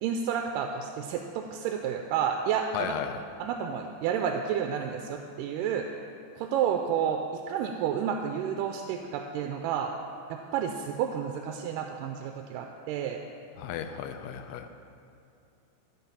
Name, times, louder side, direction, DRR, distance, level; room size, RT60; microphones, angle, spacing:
voice 1, 0.0-2.9 3.4-5.9 6.4-9.9 10.3-13.2, right 8 dB, 85° right, 3 dB, 2.2 m, -30 dB
voice 2, 2.7-3.2 13.6-14.7, left 9 dB, 85° left, 7 dB, 2.2 m, -34 dB
13.5 x 4.6 x 5.5 m, 2.7 s
omnidirectional pair, 3.8 m